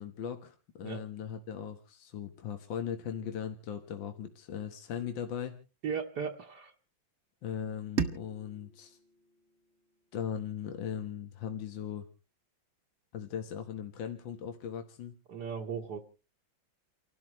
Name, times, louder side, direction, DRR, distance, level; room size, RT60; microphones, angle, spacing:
voice 1, 0.0-5.6 7.4-9.0 10.1-12.1 13.1-15.1, left 8 dB, 80° left, 6 dB, 1.9 m, -38 dB
voice 2, 5.8-6.7 15.3-16.0, right 6 dB, 65° right, 0 dB, 1.7 m, -36 dB
sound 1, 8.0-10.9, right 6 dB, 45° right, 1.2 m, -38 dB
29.5 x 12.5 x 3.1 m, 0.33 s
omnidirectional pair, 2.1 m